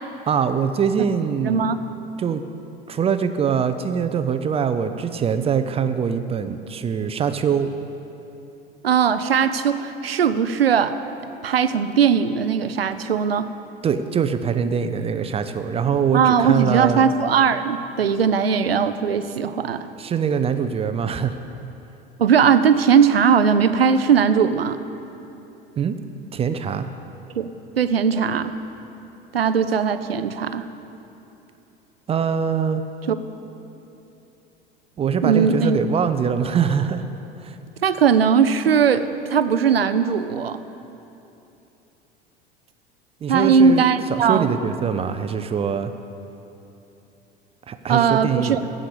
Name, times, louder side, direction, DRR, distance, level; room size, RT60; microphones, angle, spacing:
voice 1, 0.3-1.8 2.2-2.4 2.9-7.7 13.8-17.0 20.0-21.4 25.8-26.0 26.3-26.9 32.1-32.8 35.0-37.0 37.4-37.6 43.2-43.8 44.1-45.9 47.7-48.6, right 7 dB, 20° right, 9 dB, 0.5 m, -23 dB
voice 2, 1.4-1.9 8.8-11.0 11.4-13.5 16.1-19.9 22.2-24.8 27.3-28.6 29.3-30.7 33.1-33.2 35.2-35.8 37.8-40.6 43.3-44.6 47.9-48.6, right 6 dB, 80° right, 11 dB, 0.6 m, -19 dB
15.0 x 5.0 x 8.4 m, 2.9 s
figure-of-eight pair, 75°, 29 cm